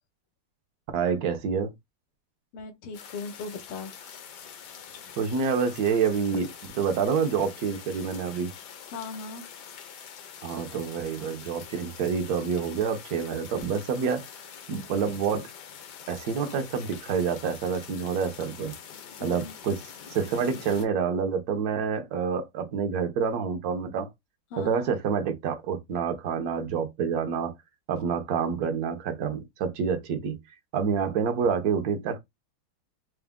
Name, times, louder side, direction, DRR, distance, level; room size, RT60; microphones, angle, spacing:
voice 1, 0.9-1.7 5.2-8.5 10.4-14.3 14.7-15.5 16.1-18.7 19.2-19.8 20.1-24.1 24.6-27.5 27.9-30.4 30.7-32.2, right 6 dB, 65° right, 0.9 m, -27 dB
voice 2, 2.5-4.0 8.9-9.5 19.2-19.5 24.5-24.9, left 4 dB, 85° left, 1.7 m, -38 dB
sound 1, 2.9-20.8, left 7 dB, 65° left, 1.1 m, -45 dB
4.7 x 2.1 x 3.5 m
omnidirectional pair, 2.4 m